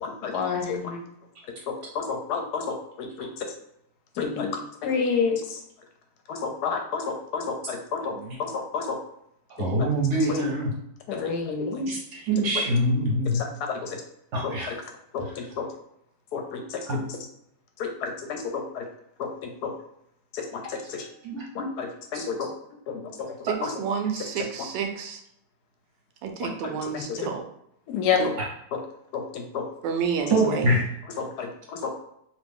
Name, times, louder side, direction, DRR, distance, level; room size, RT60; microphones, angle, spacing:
voice 1, 0.0-1.0 1.7-3.3 4.2-4.5 4.8-5.6 6.3-8.1 8.4-9.0 11.1-11.9 13.4-14.0 14.4-14.5 15.1-15.7 16.3-16.8 17.8-18.9 19.2-19.3 19.6-19.7 20.3-21.1 21.5-22.4 23.6-23.7 26.4-27.3 27.9-28.3 28.7-28.8 29.1-29.7 31.2-31.9, left 5 dB, 75° left, 4 dB, 1.0 m, -30 dB
voice 2, 9.6-10.8 11.9-13.4 14.3-14.7 15.2-15.5 16.9-17.0 20.8-20.9 21.2-21.4 22.1-22.2 23.6-23.7 28.4-28.5 30.3-30.8, right 1 dB, 55° right, -2 dB, 0.9 m, -25 dB
voice 3, 23.5-25.2 26.2-27.4 28.2-28.3 29.8-30.6, right 7 dB, 90° right, 5 dB, 1.2 m, -29 dB
2.9 x 2.5 x 3.5 m, 0.75 s
omnidirectional pair, 1.9 m